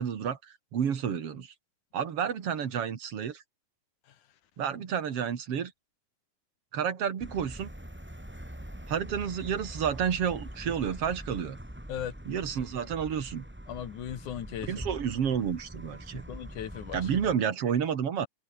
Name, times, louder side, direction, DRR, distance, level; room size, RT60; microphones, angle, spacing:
voice 1, 0.0-1.5 1.9-3.4 4.6-5.7 6.7-7.7 8.9-11.6 12.3-13.4 14.7-16.2 16.9-18.3, right 8 dB, 45° right, 2.7 m, -30 dB
sound 1, 7.2-17.4, equal, 5° right, 2.8 m, -44 dB
voice 2, 13.7-14.7 16.3-17.3, left 10 dB, 65° left, 3.0 m, -37 dB
omnidirectional pair, 4.1 m